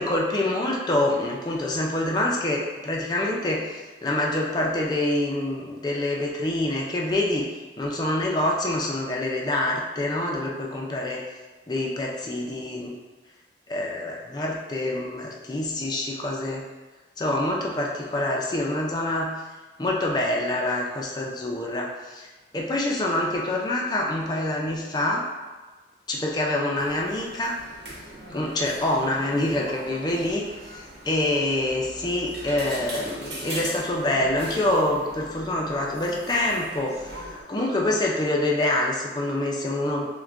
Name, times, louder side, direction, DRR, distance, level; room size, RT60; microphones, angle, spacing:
voice 1, 0.0-7.4 7.8-11.2 11.7-13.0 13.7-16.6 17.2-19.3 19.8-22.3 22.5-25.3 26.1-27.6 28.3-40.1, left 1 dB, 25° left, -2 dB, 0.5 m, -26 dB
sound 1, 26.8-37.4, right 1 dB, 75° right, 1.0 m, -40 dB
5.9 x 2.2 x 2.5 m, 1.3 s
head